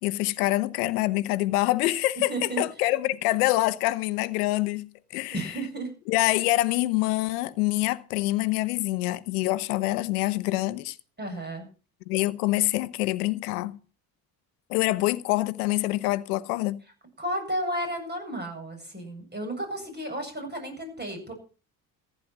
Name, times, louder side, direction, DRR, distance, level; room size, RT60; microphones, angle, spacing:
voice 1, 0.0-5.5 6.1-11.0 12.1-13.8 14.7-16.8, left 18 dB, 85° left, 1.1 m, -26 dB
voice 2, 2.3-2.6 5.3-5.9 11.2-11.7 17.2-21.3, right 1 dB, 25° right, 7.8 m, -33 dB
15.0 x 10.5 x 6.0 m
hypercardioid pair, 65°, 44 cm